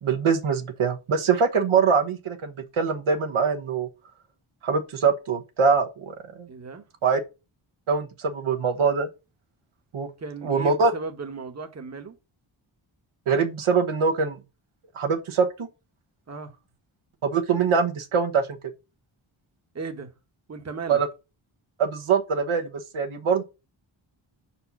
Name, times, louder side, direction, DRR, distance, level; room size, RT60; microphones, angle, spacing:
voice 1, 0.0-3.9 4.6-6.5 7.0-7.2 7.9-9.1 9.9-10.1 10.4-10.9 13.3-14.4 14.9-15.7 17.2-18.5 20.9-21.1 21.8-23.4, right 5 dB, 80° right, 1.2 m, -23 dB
voice 2, 6.5-6.8 10.2-12.1 16.3-16.6 19.7-20.1 20.5-21.0, right 4 dB, 35° right, 1.1 m, -36 dB
5.4 x 4.4 x 5.9 m
wide cardioid pair, 115°, 48 cm